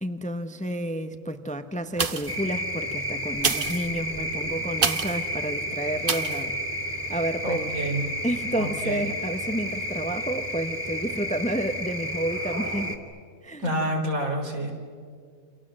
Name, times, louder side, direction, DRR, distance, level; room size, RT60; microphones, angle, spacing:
voice 1, 0.0-6.6 7.1-7.8 8.2-13.0 13.4-13.7, right 1 dB, 5° left, 8 dB, 0.9 m, -30 dB
sound 1, 1.9-2.5 3.3-5.3 6.0-6.4 7.0-7.1, right 5 dB, 45° right, 1.2 m, -28 dB
sound 2, 2.3-13.0, equal, 10° right, 2.2 m, -31 dB
voice 2, 7.4-8.0 8.5-9.0 13.6-14.7, right 1 dB, 80° right, 2 dB, 4.2 m, -28 dB
29.5 x 26.5 x 7.6 m, 2.1 s
omnidirectional pair, 1.4 m